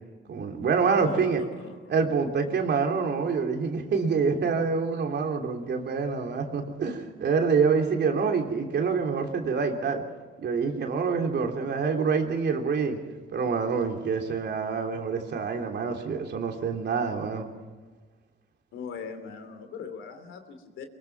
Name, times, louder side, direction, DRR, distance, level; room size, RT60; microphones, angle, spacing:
voice 1, 0.3-1.4 1.9-10.0 10.4-13.0 13.3-17.5, right 5 dB, 60° right, 3 dB, 3.2 m, -26 dB
voice 2, 0.9-1.9 18.7-20.8, left 6 dB, 85° left, 8 dB, 3.0 m, -41 dB
23.5 x 22.5 x 6.0 m, 1.4 s
cardioid pair, 90°, 20 cm